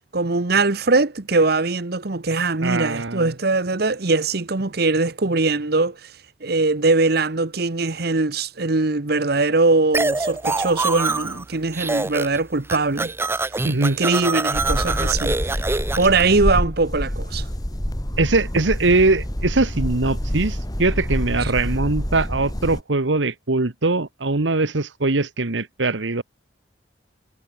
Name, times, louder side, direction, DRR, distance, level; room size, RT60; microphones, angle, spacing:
voice 1, 0.1-6.1 6.4-13.1 14.0-15.6 16.0-17.5, right 3 dB, 60° right, 1.2 m, -21 dB
voice 2, 2.6-3.2 13.6-14.0 18.2-26.2, right 3 dB, 90° right, 1.4 m, -21 dB
sound 1, 9.9-11.4 11.7-12.4 12.6-16.2, right 3 dB, 15° right, 0.4 m, -25 dB
sound 2, 14.5-22.8, equal, 20° left, 2.7 m, -27 dB
head